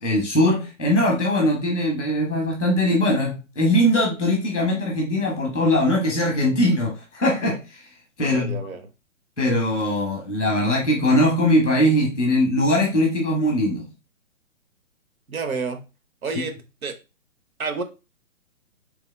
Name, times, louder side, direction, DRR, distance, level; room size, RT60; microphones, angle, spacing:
voice 1, 0.0-7.8 8.2-8.6 9.4-13.9, left 1 dB, ahead, -8 dB, 0.4 m, -21 dB
voice 2, 8.2-8.9 15.3-15.8 16.2-16.5 16.8-17.0 17.6-17.8, right 4 dB, 85° right, 8 dB, 0.8 m, -29 dB
3.4 x 3.4 x 2.2 m, 0.28 s
figure-of-eight pair, 135°, 41 cm